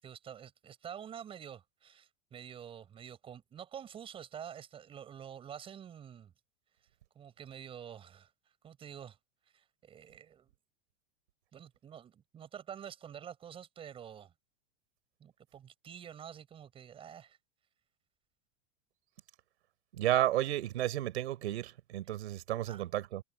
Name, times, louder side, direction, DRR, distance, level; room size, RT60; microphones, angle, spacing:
voice 1, 0.0-6.3 6.8-6.9 7.2-9.2 9.5-10.5 11.5-14.3 15.2-17.4 22.7-22.9, right 9 dB, 15° right, 7.4 m, -48 dB
voice 2, 19.9-23.2, right 13 dB, 90° right, 4.6 m, -32 dB
supercardioid pair, 180°, 33 cm